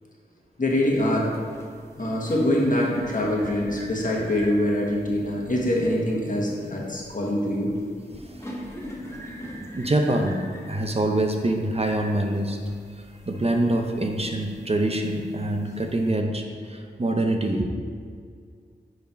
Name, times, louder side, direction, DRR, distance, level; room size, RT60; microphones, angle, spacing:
voice 1, 0.6-1.3 2.0-7.7, left 1 dB, 45° left, -3 dB, 1.6 m, -24 dB
sound 1, 0.7-16.1, equal, 15° left, 1.3 m, -43 dB
voice 2, 8.1-8.9 9.7-10.4 10.7-12.6 13.3-17.7, right 1 dB, 35° right, 3 dB, 0.8 m, -25 dB
9.7 x 3.9 x 4.5 m, 2.1 s
wide cardioid pair, 60°, 18 cm